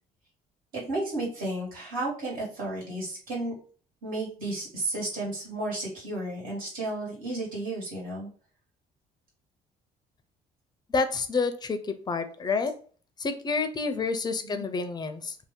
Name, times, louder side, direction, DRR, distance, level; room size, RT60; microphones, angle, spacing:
voice 1, 0.7-3.5 4.0-8.3 14.4-14.7, right 2 dB, 65° right, -5 dB, 1.5 m, -33 dB
voice 2, 10.9-12.7 13.2-15.3, left 4 dB, 25° left, 8 dB, 0.4 m, -28 dB
2.7 x 2.2 x 3.5 m, 0.42 s
cardioid pair, 110°, 17 cm